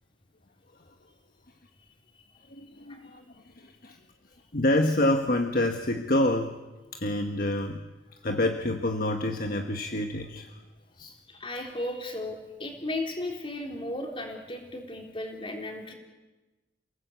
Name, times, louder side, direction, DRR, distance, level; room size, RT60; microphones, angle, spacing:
voice 1, 2.5-3.2 3.6-4.0 4.5-6.6 6.9-7.8 8.2-10.6 11.0-11.1, left 1 dB, 50° left, 5 dB, 1.3 m, -27 dB
voice 2, 11.3-15.9, left 1 dB, 30° left, 2 dB, 4.0 m, -35 dB
29.5 x 18.5 x 8.3 m, 1.2 s
head